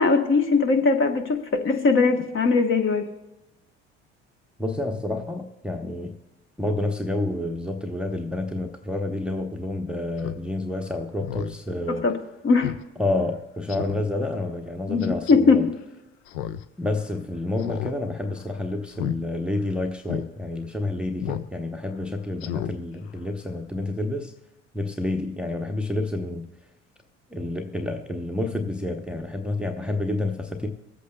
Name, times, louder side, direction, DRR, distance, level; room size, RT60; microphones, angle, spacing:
voice 1, 0.0-3.1 11.9-12.2 12.4-12.7 14.9-15.6, left 4 dB, 35° left, 6 dB, 1.2 m, -20 dB
voice 2, 4.6-6.2 6.6-12.0 13.0-15.6 16.8-24.3 24.7-26.4 27.3-30.7, left 2 dB, 5° right, 3 dB, 0.8 m, -29 dB
Speech synthesizer, 10.2-10.4 10.8-10.9 11.2-11.6 12.0-12.1 12.6-12.8 13.2-13.3 13.7-14.0 15.0-15.3 16.3-16.6 16.9-17.0 17.6-17.9 18.2-18.5 18.9-19.2 19.6-19.7 20.0-20.3 21.2-21.5 21.8-21.9 22.4-22.7 23.1-23.2, left 11 dB, 70° left, 0.6 m, -32 dB
23.0 x 8.3 x 2.2 m, 0.98 s
figure-of-eight pair, 60°, 35 cm